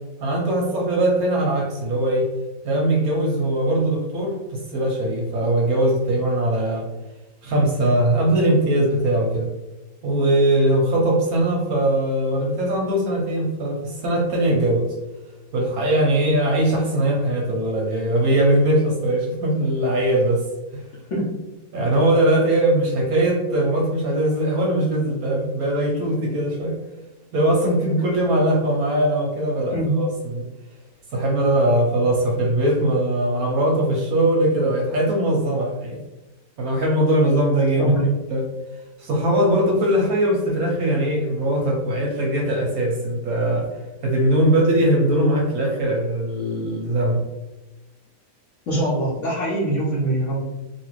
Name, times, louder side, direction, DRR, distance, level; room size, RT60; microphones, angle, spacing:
voice 1, 0.2-2.3 2.6-6.9 7.4-9.5 10.0-14.9 15.5-20.4 20.7-20.8 21.7-26.8 27.3-30.1 30.3-30.5 31.1-36.0 36.6-37.9 38.3-38.5 39.0-43.7 44.0-47.2, right 1 dB, 70° right, -1 dB, 1.0 m, -20 dB
voice 2, 48.7-50.4, right 1 dB, 60° left, -6 dB, 0.8 m, -23 dB
2.9 x 2.4 x 3.0 m, 1.1 s
omnidirectional pair, 1.8 m